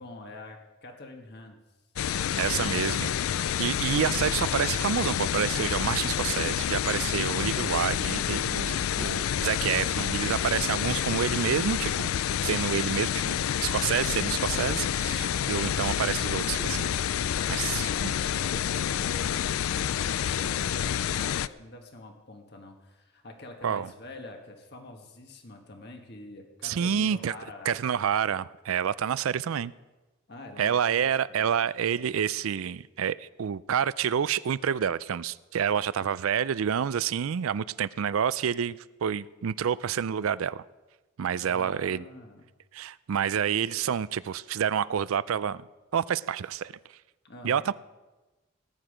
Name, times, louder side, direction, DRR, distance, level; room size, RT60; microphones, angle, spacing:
voice 1, 0.0-1.6 17.3-27.8 30.3-31.5 41.3-42.4 47.2-47.7, left 2 dB, 50° left, 3 dB, 1.5 m, -46 dB
sound 1, 2.0-21.5, left 9 dB, 80° left, 0.4 m, -28 dB
voice 2, 2.4-3.1 3.4-12.1 12.4-16.9 17.5-18.1 23.6-23.9 26.6-27.3 27.7-29.7 30.6-40.6 41.2-42.0 42.7-45.7 45.9-46.7 47.4-47.7, right 8 dB, 75° right, 18 dB, 0.4 m, -28 dB
18.5 x 9.8 x 5.1 m, 1.2 s
head